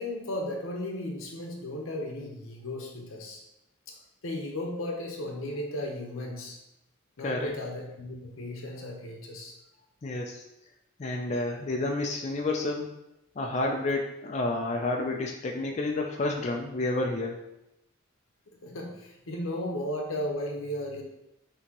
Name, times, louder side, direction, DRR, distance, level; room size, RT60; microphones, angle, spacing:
voice 1, 0.0-3.4 4.2-6.6 7.2-9.5 18.5-21.0, left 1 dB, 85° left, 1 dB, 0.9 m, -35 dB
voice 2, 10.0-10.4 11.0-12.9 13.4-17.4, left 2 dB, 35° left, 1 dB, 0.4 m, -30 dB
5.7 x 2.9 x 2.9 m, 0.86 s
head